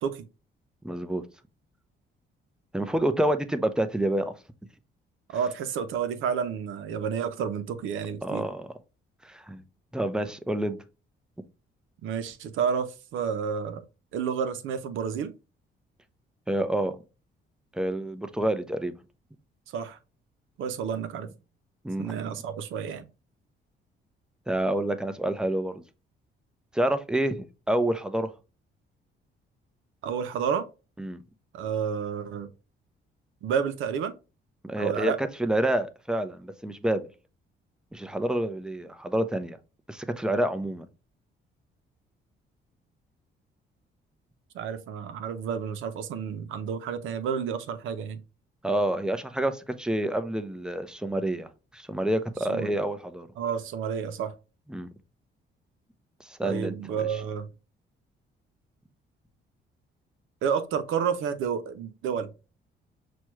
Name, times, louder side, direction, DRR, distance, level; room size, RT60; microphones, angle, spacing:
voice 1, 0.8-1.2 2.7-4.3 8.2-8.7 9.2-9.6 9.9-10.8 16.5-17.0 17.7-18.9 21.8-22.3 24.5-25.8 26.7-28.3 31.0-31.2 34.6-37.1 37.9-39.6 39.9-40.9 48.6-53.3 54.7-54.9 56.3-57.2, right 1 dB, 5° right, 0.6 m, -28 dB
voice 2, 5.3-8.4 12.0-13.8 14.1-15.3 19.7-20.0 20.6-21.3 22.0-23.1 30.0-30.7 31.5-32.5 33.4-34.2 34.8-35.2 44.5-48.2 52.5-52.7 53.4-54.3 56.4-57.5 60.4-62.3, right 7 dB, 85° right, 0.6 m, -30 dB
6.0 x 2.3 x 3.0 m
cardioid pair, 90°, 20 cm